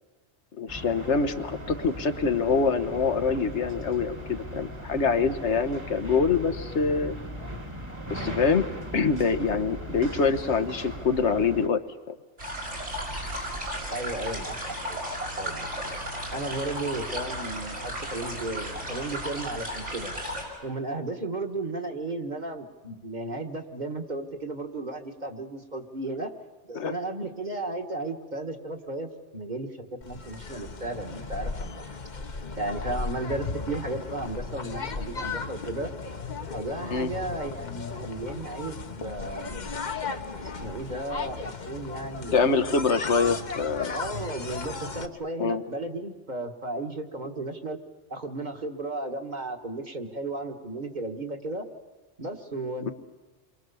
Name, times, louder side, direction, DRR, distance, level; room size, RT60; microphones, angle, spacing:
voice 1, 0.6-7.1 8.1-8.7 8.9-11.8 12.1-12.2 26.7-27.0 36.9-37.1 42.3-43.9 45.4-45.6, left 5 dB, 75° left, 9 dB, 1.5 m, -25 dB
sound 1, 0.7-11.7, equal, 25° right, 1.6 m, -38 dB
sound 2, 12.4-20.4, equal, 85° right, 6.9 m, -34 dB
voice 2, 13.9-15.0 15.4-15.7 16.3-20.1 20.6-26.3 26.6-31.9 32.6-35.9 36.5-39.7 40.4-42.6 43.9-47.8 48.1-51.7 52.2-52.9, right 2 dB, 40° right, 4 dB, 1.8 m, -34 dB
sound 3, 30.0-45.1, left 4 dB, 40° left, 1.1 m, -36 dB
29.0 x 23.5 x 7.0 m, 1.3 s
omnidirectional pair, 1.2 m